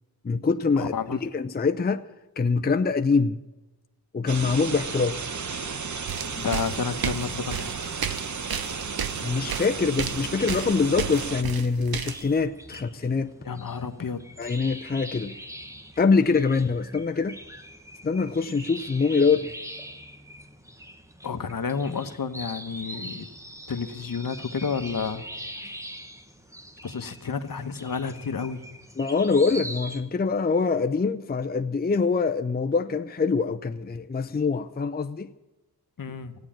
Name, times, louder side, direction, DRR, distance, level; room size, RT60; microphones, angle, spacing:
voice 1, 0.2-0.9 1.2-2.1 2.4-3.4 4.1-5.2 8.1-8.2 9.2-13.3 14.4-15.3 16.0-17.4 18.0-19.5 29.0-35.3, left 4 dB, 25° left, 0.5 m, -24 dB
voice 2, 0.8-1.2 6.4-7.7 13.4-14.5 21.2-23.3 23.7-25.3 26.8-28.6 36.0-36.4, left 5 dB, 65° left, 1.1 m, -31 dB
sound 1, 4.3-11.4, right 5 dB, 50° right, 0.9 m, -33 dB
sound 2, 6.1-12.4, right 8 dB, 75° right, 0.9 m, -32 dB
sound 3, 10.4-30.0, equal, 10° right, 1.1 m, -43 dB
16.0 x 9.1 x 8.6 m
wide cardioid pair, 85°, 37 cm